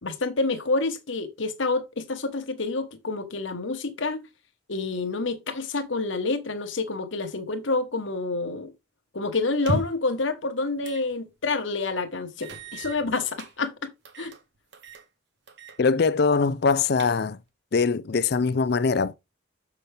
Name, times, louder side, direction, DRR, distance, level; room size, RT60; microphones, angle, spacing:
voice 1, 0.0-4.3 4.7-8.7 9.1-14.3, left 3 dB, 70° left, 1.2 m, -28 dB
sound 1, 9.5-10.1 10.8-11.1 11.5-11.6 12.4-13.5 14.0-14.4 14.7-15.1 15.5-15.8 16.1-16.2 16.7-17.5, right 1 dB, 55° right, 1.1 m, -35 dB
voice 2, 15.8-17.4 17.7-19.1, left 4 dB, 50° left, 0.4 m, -22 dB
7.0 x 5.8 x 3.4 m
head